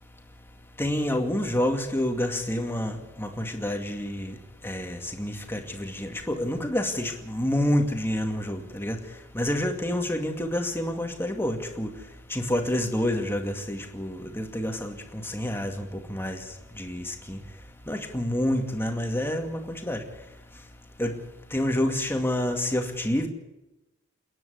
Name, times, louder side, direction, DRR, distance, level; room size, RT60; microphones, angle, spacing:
voice 1, 0.8-4.4 4.6-9.0 9.3-11.9 12.3-16.5 16.8-17.4 17.9-20.0 21.0-21.2 21.5-23.3, left 1 dB, 10° left, 3 dB, 2.3 m, -28 dB
29.0 x 10.5 x 8.6 m, 0.98 s
head